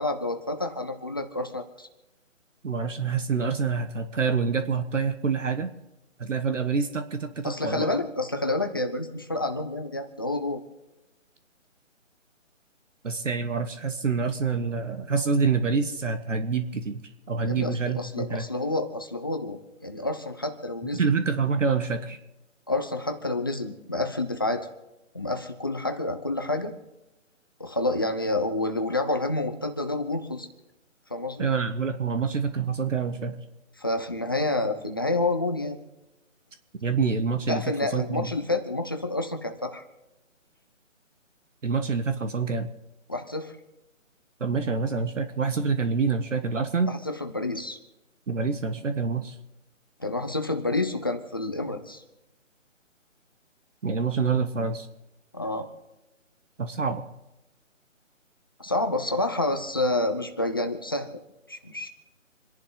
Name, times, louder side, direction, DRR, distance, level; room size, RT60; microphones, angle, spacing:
voice 1, 0.0-1.9 7.4-10.6 17.4-21.1 22.7-24.7 25.1-26.7 27.6-30.5 31.1-31.5 33.8-35.8 37.5-39.8 43.1-43.5 46.9-47.8 50.0-52.0 55.3-55.7 58.6-61.1 61.5-61.9, left 2 dB, 15° left, 6 dB, 0.6 m, -29 dB
voice 2, 2.6-5.7 6.2-7.9 13.0-17.0 17.3-18.4 20.9-22.2 31.4-33.4 36.8-37.6 37.9-38.3 41.6-42.7 44.4-46.9 48.3-49.3 53.8-54.9 56.6-57.0, right 5 dB, 70° right, 8 dB, 1.5 m, -26 dB
27.5 x 11.0 x 3.9 m, 0.99 s
figure-of-eight pair, 165°, 39 cm